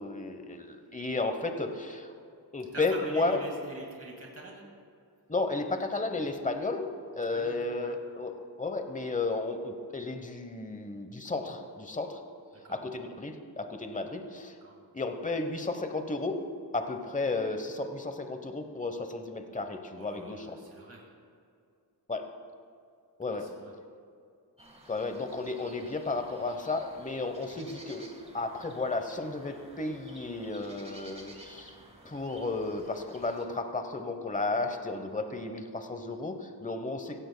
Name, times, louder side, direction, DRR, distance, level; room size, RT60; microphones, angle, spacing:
voice 1, 0.0-2.1 2.5-3.4 5.3-12.2 12.7-14.6 14.9-16.4 16.7-20.6 22.1-22.2 23.2-23.5 24.9-31.7 32.0-37.2, left 3 dB, 20° left, 7 dB, 1.0 m, -33 dB
voice 2, 2.6-4.6 7.2-7.9 12.5-12.8 14.6-14.7 19.9-21.0 23.3-23.8, right 2 dB, 35° right, -1 dB, 2.1 m, -45 dB
sound 1, 24.6-33.5, right 1 dB, 15° right, 1.7 m, -53 dB
17.0 x 15.5 x 2.3 m, 2.4 s
wide cardioid pair, 90°, 43 cm